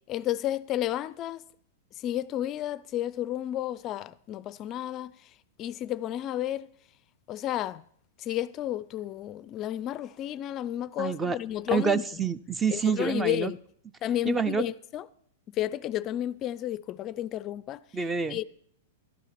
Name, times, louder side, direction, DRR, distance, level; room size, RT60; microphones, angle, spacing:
voice 1, 0.1-1.4 2.0-6.7 7.3-7.8 8.2-12.0 12.7-13.6 14.0-15.0 15.5-17.8 18.3-18.4, left 12 dB, 35° left, 0.4 m, -32 dB
voice 2, 11.0-11.4 11.7-13.5 14.3-14.6 17.9-18.4, right 5 dB, 15° right, 0.5 m, -27 dB
12.5 x 11.5 x 4.3 m
hypercardioid pair, 125°, 0 cm